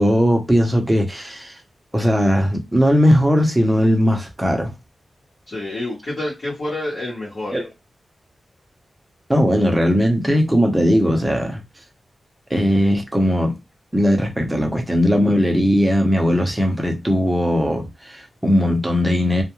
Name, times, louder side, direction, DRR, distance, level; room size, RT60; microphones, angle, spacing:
voice 1, 0.0-1.5 1.9-4.7 7.5-7.7 9.3-11.6 12.5-13.6 13.9-19.4, equal, 10° right, 0.7 m, -18 dB
voice 2, 5.5-7.6, left 1 dB, 55° left, 1.0 m, -28 dB
2.3 x 2.1 x 3.0 m
wide cardioid pair, 100°, 0 cm